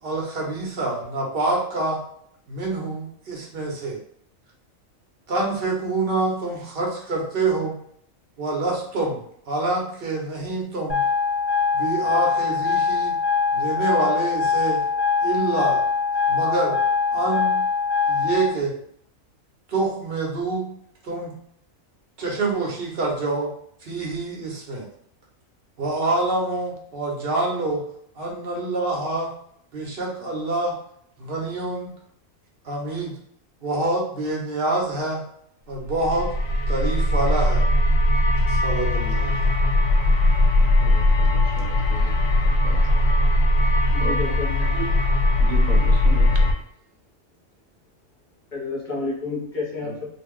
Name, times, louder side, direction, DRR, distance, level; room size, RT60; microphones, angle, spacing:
voice 1, 0.0-2.0 2.5-4.0 5.3-7.7 8.4-9.2 9.5-11.0 11.7-13.2 13.5-14.8 15.2-15.8 16.3-16.8 17.1-17.5 18.1-18.7 19.7-20.6 21.0-21.3 22.2-23.5 23.8-24.9 25.8-27.8 28.2-29.3 29.7-30.7 31.2-31.9 32.6-33.2 33.6-35.2 35.7-36.3 36.7-37.6 38.5-39.4 40.8-40.9, right 2 dB, 50° right, -2 dB, 1.0 m, -26 dB
sound 1, 10.9-18.5, left 5 dB, 10° left, 0.7 m, -22 dB
sound 2, 35.8-46.5, left 1 dB, 70° left, 0.9 m, -19 dB
voice 2, 40.6-42.1 42.4-42.8 44.0-44.1 45.4-46.5 49.8-49.9, right 4 dB, 80° right, 3 dB, 1.0 m, -36 dB
voice 3, 43.9-44.8 48.5-50.1, left 3 dB, 40° left, -3 dB, 1.0 m, -30 dB
2.5 x 2.3 x 3.6 m, 0.67 s
omnidirectional pair, 1.4 m